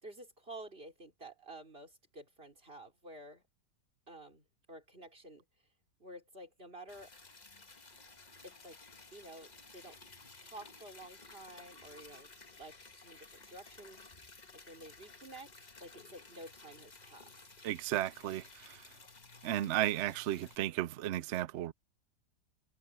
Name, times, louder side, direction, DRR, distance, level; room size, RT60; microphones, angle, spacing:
voice 1, 0.0-3.4 4.1-5.4 6.0-7.1 8.4-8.8 9.1-10.0 10.4-12.3 12.6-14.0 14.5-17.4, right 1 dB, 35° right, 4.2 m, -51 dB
Liquid, 6.9-20.6, left 3 dB, 25° left, 1.4 m, -55 dB
voice 2, 17.6-18.8 19.4-21.7, right 13 dB, 70° right, 0.6 m, -34 dB
omnidirectional pair, 1.8 m